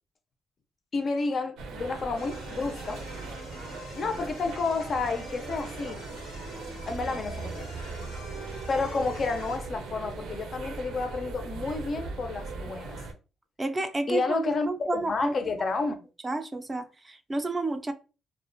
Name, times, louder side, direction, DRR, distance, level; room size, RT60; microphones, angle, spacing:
voice 1, 0.9-3.0 4.0-6.0 6.9-7.7 8.7-13.0 14.1-16.0, left 3 dB, 50° left, 0.4 m, -30 dB
sound 1, 1.6-13.1, right 3 dB, 85° right, 0.5 m, -39 dB
sound 2, 2.2-9.6, left 2 dB, 90° left, 0.6 m, -45 dB
voice 2, 13.6-15.5 16.2-17.9, right 2 dB, 25° right, 0.3 m, -31 dB
2.4 x 2.1 x 2.5 m
cardioid pair, 90°, 0 cm